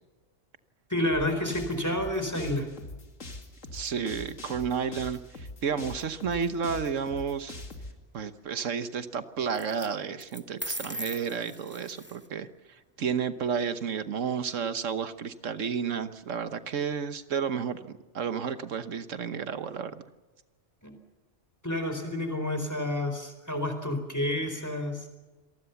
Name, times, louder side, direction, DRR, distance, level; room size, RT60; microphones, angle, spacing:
voice 1, 0.9-2.7 20.8-20.9 21.6-25.1, left 1 dB, 15° left, 6 dB, 4.2 m, -29 dB
sound 1, 1.1-7.9, left 2 dB, 80° left, 2.8 m, -42 dB
voice 2, 3.7-7.6 8.1-20.0, right 6 dB, 80° right, 11 dB, 1.4 m, -32 dB
sound 2, 9.5-9.9 10.2-12.3, right 1 dB, 10° right, 1.2 m, -39 dB
27.0 x 19.5 x 7.1 m, 1.2 s
omnidirectional pair, 1.3 m